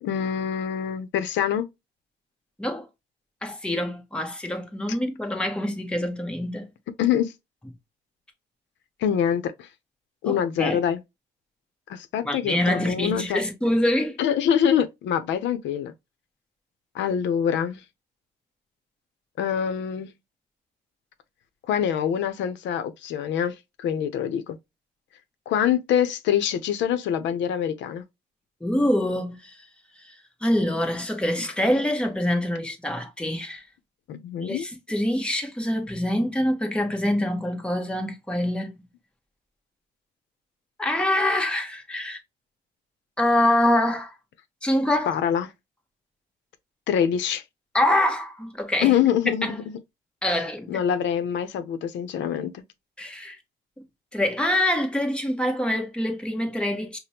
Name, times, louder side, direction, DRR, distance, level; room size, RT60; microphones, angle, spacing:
voice 1, 0.0-1.7 7.0-7.3 9.0-9.7 10.2-11.0 11.9-13.4 14.2-15.9 16.9-17.8 19.4-20.1 21.7-24.6 25.5-28.0 34.1-34.7 45.1-45.5 46.9-47.4 48.8-49.5 50.7-52.6, left 9 dB, 85° left, 0.6 m, -25 dB
voice 2, 3.4-6.7 10.2-10.8 12.2-14.2 28.6-29.6 30.0-30.1 30.4-33.6 34.4-38.7 40.8-42.2 43.2-44.1 44.6-45.1 47.7-49.0 49.4-49.6 50.2-50.8 53.0-53.4 54.1-57.0, left 1 dB, 5° left, 0.9 m, -25 dB
5.1 x 2.1 x 2.8 m
cardioid pair, 135°, 19 cm